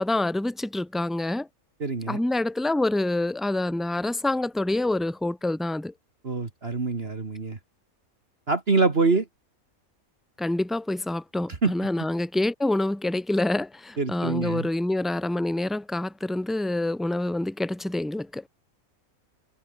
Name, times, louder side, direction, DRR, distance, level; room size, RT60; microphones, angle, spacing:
voice 1, 0.0-1.5 2.1-5.9 10.4-18.4, left 2 dB, ahead, 0.9 m, -26 dB
voice 2, 1.8-2.2 6.2-7.6 8.5-9.2 11.6-11.7 14.0-14.7, right 3 dB, 45° right, 2.3 m, -25 dB
open air
omnidirectional pair, 1.5 m